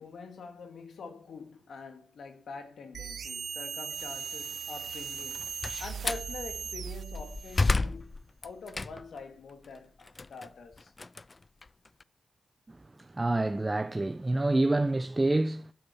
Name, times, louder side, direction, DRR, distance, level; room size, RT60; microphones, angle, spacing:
voice 1, 0.0-5.4 5.8-10.9, left 4 dB, 75° left, 2.4 m, -45 dB
sound 1, 2.9-7.8, right 7 dB, 75° right, 0.6 m, -38 dB
Slam, 5.2-6.3 6.9-9.2 9.6-12.0, left 3 dB, 40° left, 0.5 m, -32 dB
voice 2, 13.1-15.7, right 2 dB, 30° right, 0.9 m, -27 dB
12.0 x 9.1 x 5.7 m
supercardioid pair, 40°, 0 cm